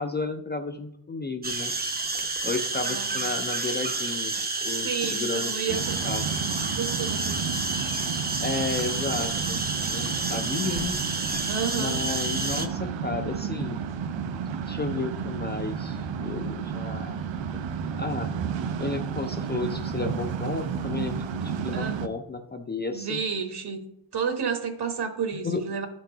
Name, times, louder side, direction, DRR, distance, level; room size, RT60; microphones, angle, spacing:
voice 1, 0.0-1.7 2.4-4.3 4.6-6.2 8.4-9.6 9.8-11.0 11.8-13.8 14.7-17.2 18.0-18.3 18.8-23.2 25.3-25.6, left 3 dB, 25° left, 6 dB, 0.3 m, -32 dB
sound 1, 1.4-12.7, right 3 dB, 20° right, 0.6 m, -30 dB
voice 2, 2.9-3.2 4.7-6.0 6.8-7.4 11.5-12.0 21.7-22.0 22.9-23.8 24.1-25.9, right 6 dB, 60° right, 6 dB, 1.3 m, -31 dB
sound 2, 5.7-22.1, right 7 dB, 85° right, 0.7 m, -32 dB
13.0 x 4.6 x 3.8 m, 0.78 s
wide cardioid pair, 165°, 44 cm